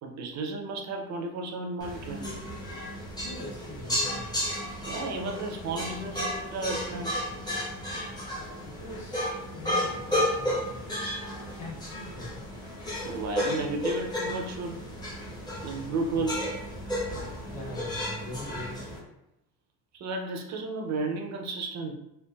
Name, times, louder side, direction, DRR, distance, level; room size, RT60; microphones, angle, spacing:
voice 1, 0.0-2.3 4.9-7.2 13.0-14.9 15.6-16.5 19.9-21.9, right 3 dB, 45° right, 2 dB, 0.6 m, -33 dB
sound 1, 1.8-19.0, left 1 dB, 10° left, 0.7 m, -33 dB
voice 2, 3.2-4.4 8.6-10.8 11.5-12.4 16.1-16.3 17.5-18.9, left 1 dB, 50° left, -4 dB, 1.1 m, -42 dB
3.2 x 2.3 x 2.2 m, 0.87 s
cardioid pair, 125°, 39 cm